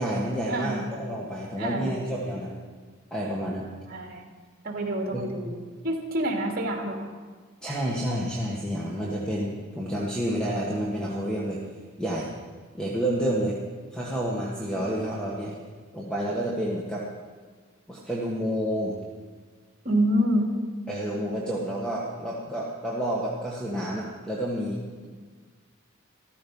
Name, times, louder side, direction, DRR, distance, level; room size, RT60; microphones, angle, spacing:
voice 1, 0.0-2.5 3.1-3.7 5.1-5.3 7.6-11.6 12.0-12.3 12.7-13.6 13.9-15.6 15.9-17.1 17.9-19.0 20.9-24.8, equal, 5° left, -4 dB, 1.5 m, -29 dB
voice 2, 1.6-1.9 3.9-4.3 4.6-5.6 5.8-7.1 19.8-20.5, right 1 dB, 45° right, 1 dB, 2.6 m, -27 dB
14.0 x 13.5 x 5.5 m, 1.5 s
head